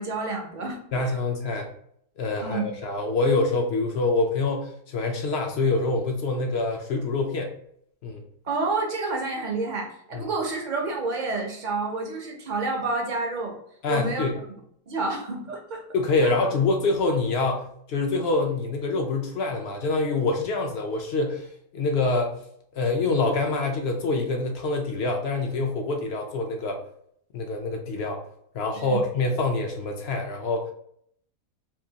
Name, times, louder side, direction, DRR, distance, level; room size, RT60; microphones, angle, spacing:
voice 1, 0.0-1.2 2.4-2.7 8.4-13.6 13.9-14.2 14.9-15.8 16.2-16.3 28.8-29.0, right 3 dB, 50° right, 1 dB, 0.5 m, -29 dB
voice 2, 0.9-1.7 2.2-7.5 8.0-8.2 10.1-10.3 13.8-14.4 15.9-21.5 21.7-22.3 22.7-26.8 27.3-28.2 28.5-30.7, left 3 dB, 70° left, 3 dB, 0.6 m, -25 dB
3.7 x 2.6 x 2.7 m, 0.68 s
omnidirectional pair, 1.5 m